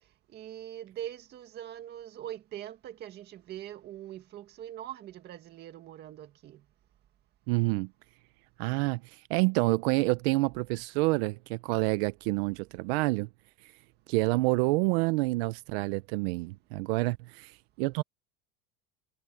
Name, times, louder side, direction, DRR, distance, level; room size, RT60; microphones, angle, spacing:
voice 1, 0.3-6.6, right 11 dB, 35° right, 2.0 m, -42 dB
voice 2, 7.5-7.9 8.6-13.3 14.1-17.5 17.8-18.0, right 23 dB, 90° right, 0.7 m, -28 dB
cardioid pair, 180°, 30 cm